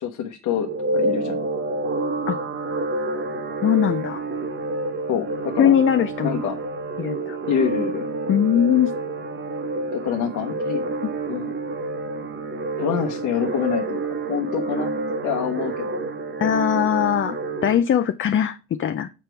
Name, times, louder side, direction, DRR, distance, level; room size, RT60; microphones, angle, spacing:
voice 1, 0.0-1.4 5.1-5.8 6.2-6.6 7.5-8.1 9.9-10.9 11.3-11.5 12.8-14.0 14.3-14.9 15.2-15.9, left 8 dB, 80° left, 1.0 m, -26 dB
sound 1, 0.6-17.7, right 2 dB, 40° right, 1.2 m, -28 dB
voice 2, 3.6-4.2 5.6-6.4 7.0-7.4 8.3-8.9 11.0-11.1 16.4-19.1, left 9 dB, 40° left, 0.5 m, -20 dB
7.4 x 5.2 x 4.5 m
cardioid pair, 90°, 30 cm